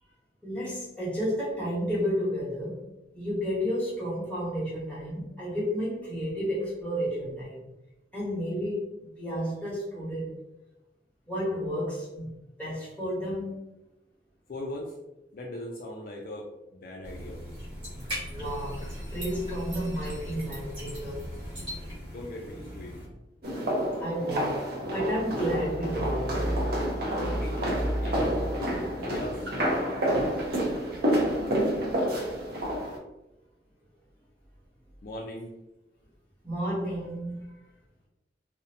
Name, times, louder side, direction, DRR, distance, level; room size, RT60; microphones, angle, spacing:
voice 1, 0.4-2.8 3.1-7.6 8.1-10.4 11.3-12.3 12.6-13.6 18.3-21.2 24.0-24.6 24.9-26.3 36.4-37.5, equal, 10° left, -9 dB, 1.0 m, -31 dB
voice 2, 14.5-14.9 15.3-17.4 22.1-22.9 27.3-29.5 35.0-35.5, left 1 dB, 50° left, -1 dB, 0.3 m, -39 dB
sound 1, 17.0-23.1, equal, 30° right, 1.2 m, -38 dB
sound 2, 23.4-33.0, equal, 60° right, 0.5 m, -28 dB
2.6 x 2.0 x 2.6 m, 0.95 s
head